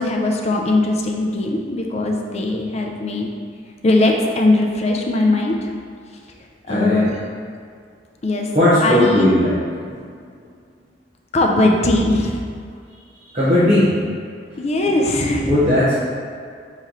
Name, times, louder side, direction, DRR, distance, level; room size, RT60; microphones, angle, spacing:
voice 1, 0.0-3.3 3.8-5.7 6.7-7.1 8.2-8.5 8.8-9.3 11.3-12.4 14.6-15.6, left 2 dB, 40° left, 1 dB, 0.5 m, -19 dB
voice 2, 6.7-7.1 8.5-9.5 9.9-10.0 13.2-14.0 15.5-16.0, left 1 dB, 40° right, -12 dB, 0.9 m, -17 dB
4.1 x 3.1 x 3.9 m, 2.1 s
head